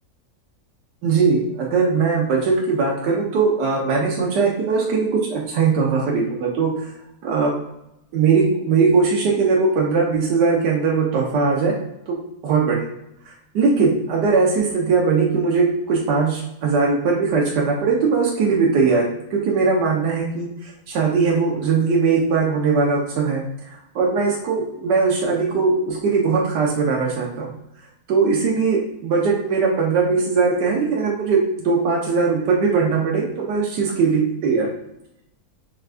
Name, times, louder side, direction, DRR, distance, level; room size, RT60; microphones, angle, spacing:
voice 1, 1.0-6.9 7.2-7.5 8.1-11.7 12.1-12.2 12.4-12.8 13.5-23.4 23.7-27.5 28.1-34.7, right 4 dB, 90° right, -2 dB, 1.4 m, -20 dB
4.5 x 2.4 x 3.3 m, 0.83 s
omnidirectional pair, 1.8 m